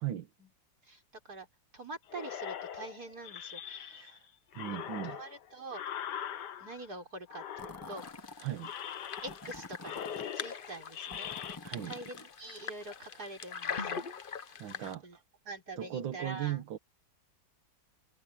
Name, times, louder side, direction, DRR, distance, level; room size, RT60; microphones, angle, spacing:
voice 1, 0.8-1.5 1.7-4.1 4.7-4.8 5.0-5.8 6.6-8.1 9.2-11.3 11.8-14.0 14.7-15.2 15.4-16.6, right 2 dB, 55° right, 6.5 m, -45 dB
sound 1, 2.1-4.2 4.5-6.9 7.3-8.2 8.6-9.6 9.8-11.6, left 9 dB, 65° left, 1.6 m, -42 dB
voice 2, 3.9-4.3 4.6-5.2 8.4-8.7 11.6-11.9 14.6-15.0 15.8-16.8, right 12 dB, 85° right, 1.9 m, -37 dB
sound 2, 7.6-8.4 9.2-10.3 11.1-12.3, left 2 dB, 15° left, 0.7 m, -48 dB
sound 3, 8.0-14.9, left 6 dB, 50° left, 0.6 m, -43 dB
omnidirectional pair, 2.0 m